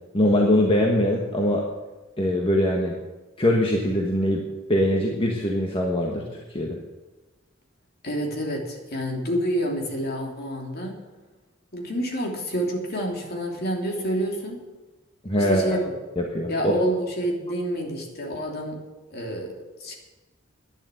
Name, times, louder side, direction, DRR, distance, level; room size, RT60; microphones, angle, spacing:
voice 1, 0.1-1.7 2.2-2.9 3.4-6.2 6.5-6.8 15.2-15.8 16.2-16.7, left 1 dB, 25° left, 0 dB, 1.4 m, -22 dB
voice 2, 8.0-11.0 11.7-14.6 15.4-15.8 16.5-18.8 19.1-19.5 19.8-20.0, right 1 dB, 50° left, 0 dB, 3.1 m, -28 dB
11.5 x 10.5 x 8.4 m, 1.2 s
head